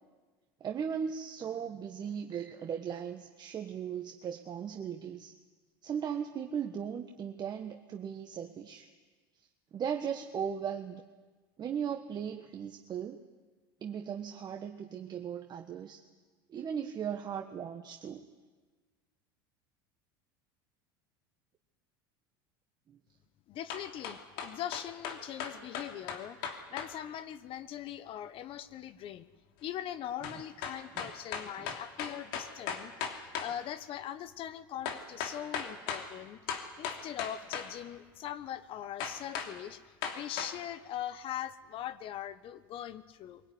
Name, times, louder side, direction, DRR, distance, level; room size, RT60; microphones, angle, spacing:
voice 1, 0.6-5.3 5.8-8.9 9.7-11.0 11.6-13.2 13.8-16.0 16.5-18.2 22.9-23.0 31.0-31.1 31.6-31.7, right 8 dB, 35° right, 4 dB, 1.5 m, -37 dB
voice 2, 23.5-29.3 29.6-39.8 40.1-43.4, left 11 dB, 50° left, 14 dB, 1.2 m, -41 dB
sound 1, 23.7-26.9 30.2-33.5 34.8-36.1 36.5-37.7 39.0-39.5 40.0-40.5, left 7 dB, 70° left, 3.0 m, -37 dB
23.0 x 17.5 x 9.6 m, 1.4 s
hypercardioid pair, 90°, 12 cm